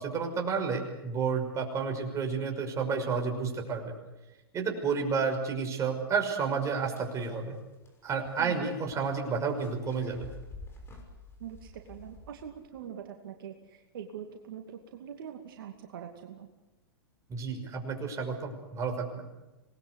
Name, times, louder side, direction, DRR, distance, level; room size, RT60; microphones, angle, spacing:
voice 1, 0.0-3.9 4.5-7.6 8.0-10.3 17.3-19.3, right 5 dB, 25° right, 3 dB, 5.9 m, -31 dB
sound 1, 6.5-12.9, left 2 dB, 20° left, 6.2 m, -50 dB
voice 2, 8.4-8.7 11.4-16.5, right 9 dB, 65° right, 3 dB, 2.5 m, -43 dB
26.5 x 20.0 x 8.3 m, 1.0 s
hypercardioid pair, 115°, 13 cm